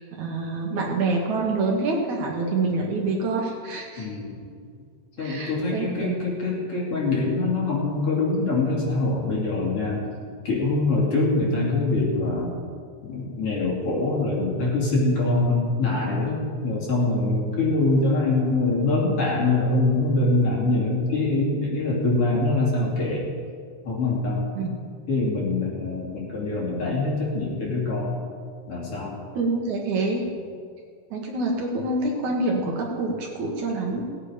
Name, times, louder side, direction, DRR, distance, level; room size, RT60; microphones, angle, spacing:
voice 1, 0.0-4.1 5.2-6.2 24.6-24.7 29.4-30.3 31.1-34.1, right 3 dB, 65° right, 0 dB, 2.6 m, -26 dB
voice 2, 4.0-4.5 5.2-10.0 10.4-12.5 13.0-23.2 23.8-24.5 25.1-28.2 28.7-29.2 30.3-30.4, left 2 dB, 45° left, -4 dB, 3.3 m, -24 dB
18.5 x 8.9 x 5.0 m, 2.1 s
omnidirectional pair, 4.0 m